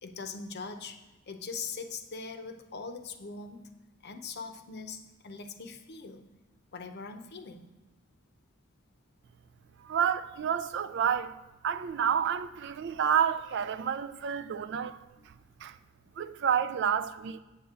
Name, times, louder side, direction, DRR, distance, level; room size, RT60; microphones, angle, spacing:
voice 1, 0.0-3.7 4.0-6.2 6.7-7.7, left 4 dB, 55° left, 0.7 m, -41 dB
voice 2, 9.8-11.4 11.6-15.8 16.2-17.4, right 8 dB, 60° right, 0.4 m, -30 dB
8.0 x 7.4 x 3.7 m
head